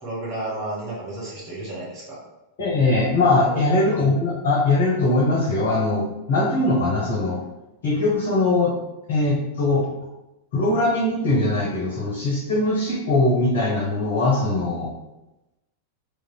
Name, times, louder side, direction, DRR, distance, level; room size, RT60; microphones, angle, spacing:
voice 1, 0.0-2.2 3.5-3.6, right 1 dB, 35° right, -7 dB, 1.4 m, -32 dB
voice 2, 2.6-7.4 7.8-8.8 9.1-9.8 10.5-14.9, left 2 dB, 55° left, -4 dB, 0.6 m, -21 dB
3.1 x 2.3 x 2.2 m, 0.99 s
figure-of-eight pair, 90°, 0 cm